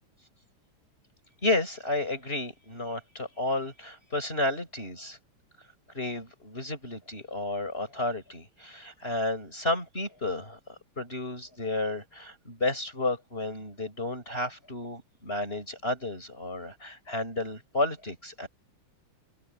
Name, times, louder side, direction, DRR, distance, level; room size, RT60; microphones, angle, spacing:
voice 1, 1.4-5.2 5.9-10.6 11.0-18.5, left 2 dB, 25° left, 6.4 m, -32 dB
omnidirectional pair, 2.3 m